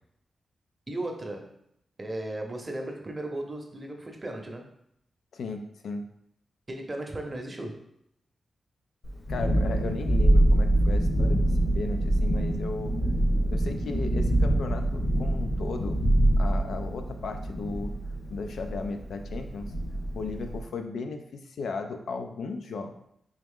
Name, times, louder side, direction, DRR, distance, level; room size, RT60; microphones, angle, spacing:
voice 1, 0.9-1.5 2.0-4.7 6.7-7.8 9.8-10.0, right 1 dB, 30° right, 3 dB, 0.7 m, -36 dB
voice 2, 5.3-6.0 9.3-12.9 13.5-16.0 16.4-17.9 18.3-19.7 20.2-22.9, left 4 dB, 80° left, 6 dB, 0.4 m, -35 dB
Thunderstorm, 9.0-20.6, right 1 dB, 60° left, 1.2 m, -25 dB
3.5 x 3.0 x 3.6 m, 0.74 s
cardioid pair, 80°, 0 cm